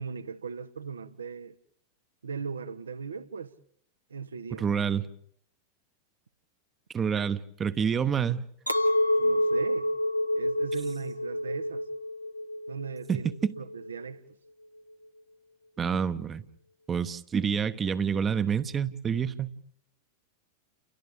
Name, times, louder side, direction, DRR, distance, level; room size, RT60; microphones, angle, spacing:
voice 1, 0.0-1.5 2.2-3.5 4.1-4.7 9.2-9.9 10.3-11.9 12.7-14.2, right 6 dB, 70° right, 0.9 m, -38 dB
voice 2, 4.6-5.0 6.9-8.4 13.1-13.5 15.8-16.4 16.9-19.5, right 7 dB, 20° right, 0.9 m, -28 dB
Chink clink, 8.7-14.0, left 1 dB, 90° left, 0.8 m, -28 dB
30.0 x 29.0 x 3.5 m
figure-of-eight pair, 90°, 0 cm